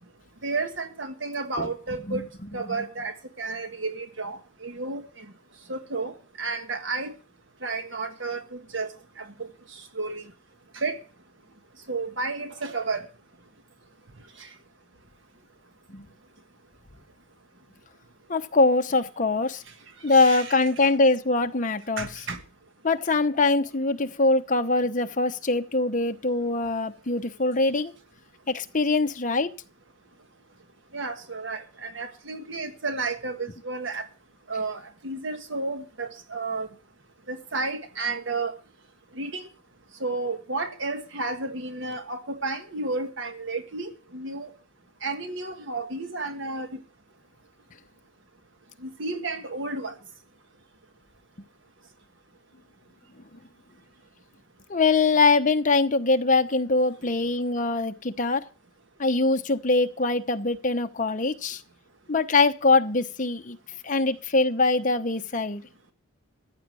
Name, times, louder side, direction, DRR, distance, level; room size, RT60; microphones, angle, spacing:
voice 1, 0.4-2.2 2.5-5.2 5.7-7.1 7.6-8.9 9.2-9.3 9.7-10.2 10.7-11.0 11.9-13.0 14.4-14.5 20.1-20.9 22.0-22.4 30.9-34.1 34.5-36.7 37.3-38.5 39.1-39.5 40.0-44.5 45.0-46.8 48.8-49.9, right 3 dB, 60° right, 1.4 m, -32 dB
voice 2, 18.3-19.6 20.0-22.1 22.8-27.9 28.5-29.5 53.3-53.4 54.7-58.4 59.0-61.6 62.1-63.6 63.8-65.6, left 3 dB, 35° left, 0.9 m, -23 dB
14.5 x 8.6 x 6.2 m
head